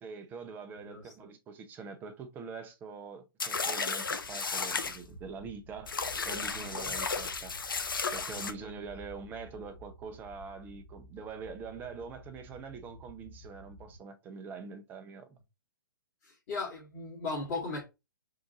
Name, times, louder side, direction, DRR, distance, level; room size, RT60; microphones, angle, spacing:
voice 1, 0.0-5.9 6.2-7.5 8.1-15.3, right 5 dB, 15° right, 0.6 m, -44 dB
sound 1, 3.4-5.0 5.9-8.5, left 4 dB, 75° left, 0.6 m, -34 dB
sound 2, 4.1-14.0, equal, 15° left, 1.2 m, -52 dB
voice 2, 6.5-6.9 8.3-8.5 16.2-17.8, left 3 dB, 40° left, 1.7 m, -38 dB
3.7 x 2.5 x 3.9 m
figure-of-eight pair, 130°, 11 cm